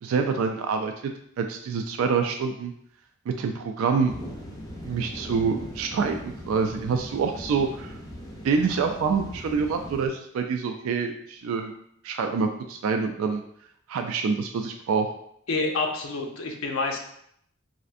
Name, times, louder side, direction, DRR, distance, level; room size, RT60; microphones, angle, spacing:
voice 1, 0.0-0.9 1.4-2.7 3.3-4.1 4.8-7.9 8.4-11.7 12.0-13.4 13.9-15.1, right 5 dB, 85° right, 4 dB, 0.3 m, -26 dB
sound 1, 4.1-10.1, equal, 20° left, 0.5 m, -39 dB
voice 2, 15.5-17.0, left 3 dB, 75° left, 2 dB, 0.5 m, -28 dB
4.2 x 2.5 x 2.4 m, 0.70 s
head